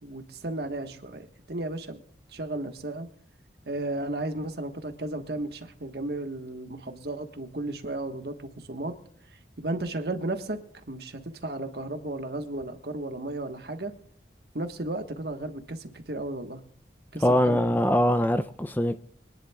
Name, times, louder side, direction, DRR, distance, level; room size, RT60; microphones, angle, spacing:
voice 1, 0.0-2.0 2.3-3.1 3.6-8.9 9.3-10.6 10.9-13.9 14.5-16.6 17.1-17.6, right 2 dB, 60° right, 1.4 m, -34 dB
voice 2, 17.2-19.0, equal, 10° left, 0.4 m, -23 dB
25.0 x 10.5 x 2.3 m
head